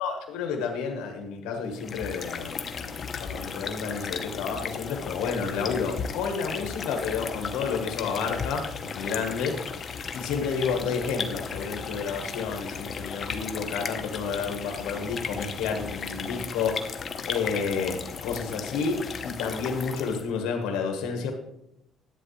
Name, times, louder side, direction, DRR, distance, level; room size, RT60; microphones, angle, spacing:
voice 1, 0.0-9.6 10.1-16.9 17.2-21.3, left 5 dB, 90° left, 3 dB, 1.3 m, -30 dB
sound 1, 1.7-20.3, left 6 dB, 45° left, 0.8 m, -35 dB
10.5 x 8.4 x 3.2 m, 0.79 s
cardioid pair, 110°, 0 cm